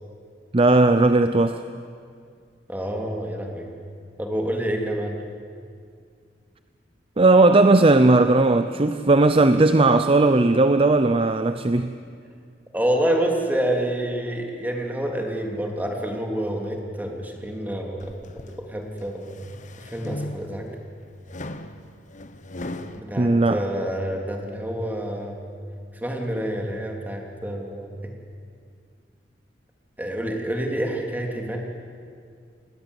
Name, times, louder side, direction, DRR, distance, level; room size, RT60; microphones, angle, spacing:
voice 1, 0.5-1.6 7.2-12.0 23.2-23.6, right 2 dB, 30° right, 10 dB, 0.7 m, -17 dB
voice 2, 2.7-3.7 4.2-5.2 12.7-18.2 18.6-19.4 19.8-20.7 22.9-25.4 26.0-28.1 30.0-31.6, right 1 dB, 10° right, 1 dB, 3.2 m, -28 dB
sound 1, 18.0-18.6 19.1-20.7 21.3-23.0, left 1 dB, 45° left, 1.2 m, -37 dB
28.5 x 20.5 x 8.3 m, 2.2 s
head